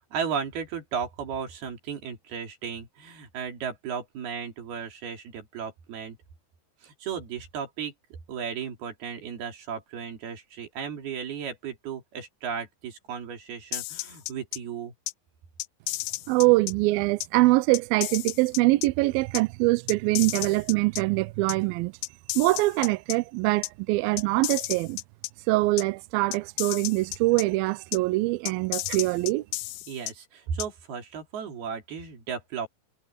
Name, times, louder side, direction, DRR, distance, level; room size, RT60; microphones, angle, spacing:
voice 1, 0.1-6.2 6.8-14.9 29.9-32.7, right 7 dB, 65° right, 5.1 m, -35 dB
sound 1, 13.7-14.6 15.1-15.2 15.6-16.7 17.2-17.3 17.7-18.9 19.4-19.5 19.9-21.0 21.5-21.6 22.0-23.2 23.6-23.7 24.2-25.3 25.8-25.9 26.3-27.4 27.9-28.0 28.5-30.1 30.6-30.7, left 21 dB, 85° left, 2.3 m, -33 dB
voice 2, 16.3-21.9 22.4-25.0 25.5-29.4, right 21 dB, 85° right, 2.1 m, -23 dB
omnidirectional pair, 4.8 m